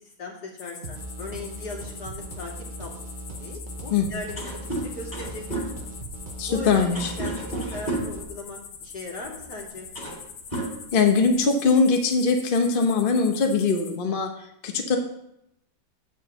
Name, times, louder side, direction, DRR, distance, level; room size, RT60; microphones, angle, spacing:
voice 1, 0.0-2.5 2.8-3.1 3.4-5.7 6.5-9.9, left 2 dB, 65° left, -1 dB, 2.5 m, -39 dB
sound 1, 0.6-14.0, left 6 dB, 80° left, 1.6 m, -43 dB
sound 2, 0.8-8.2, right 1 dB, 45° right, 0.6 m, -39 dB
sound 3, 4.4-8.3 9.3-9.4 9.8-10.2 10.5-11.4, right 1 dB, 25° left, 2.5 m, -32 dB
voice 2, 6.4-7.1 10.9-14.3 14.6-15.0, left 4 dB, 40° left, 4 dB, 0.9 m, -21 dB
8.5 x 5.1 x 6.8 m, 0.78 s
omnidirectional pair, 1.9 m